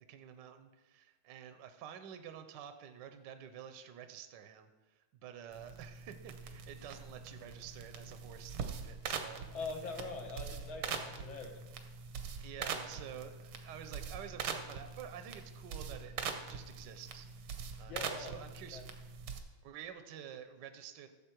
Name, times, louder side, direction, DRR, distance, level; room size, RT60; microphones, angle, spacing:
voice 1, 0.1-9.5 10.9-11.1 12.4-18.8 19.6-21.1, right 9 dB, 65° right, 8 dB, 1.2 m, -49 dB
sound 1, 5.5-19.4, right 6 dB, 85° right, 1.9 m, -43 dB
voice 2, 9.5-11.6 17.9-18.4 18.7-18.9, left 3 dB, 65° left, 3 dB, 2.0 m, -43 dB
14.5 x 7.3 x 4.5 m, 1.2 s
omnidirectional pair, 2.4 m